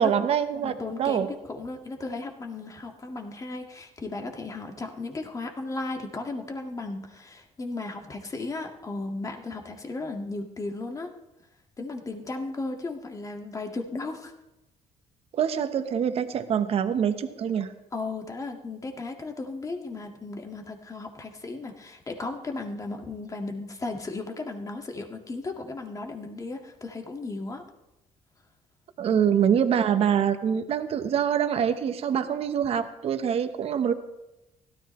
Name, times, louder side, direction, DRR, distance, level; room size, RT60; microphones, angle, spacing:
voice 1, 0.0-0.7 1.0-1.3 15.3-17.7 29.0-33.9, right 8 dB, 55° right, 9 dB, 1.0 m, -25 dB
voice 2, 0.6-11.1 11.8-14.3 17.9-27.6 29.1-29.2, left 3 dB, 25° left, 3 dB, 1.9 m, -35 dB
16.5 x 13.0 x 3.2 m, 0.96 s
cardioid pair, 95°, 12 cm